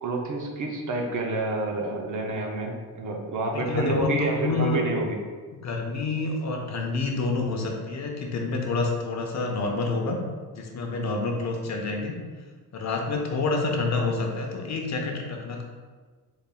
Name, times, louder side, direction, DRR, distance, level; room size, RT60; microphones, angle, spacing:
voice 1, 0.0-5.2, right 2 dB, 50° right, 2 dB, 0.6 m, -29 dB
voice 2, 3.5-4.8 5.6-10.2 10.5-12.2 12.7-15.6, left 3 dB, 45° left, 2 dB, 0.5 m, -28 dB
3.9 x 3.4 x 2.3 m, 1.4 s
cardioid pair, 115°, 41 cm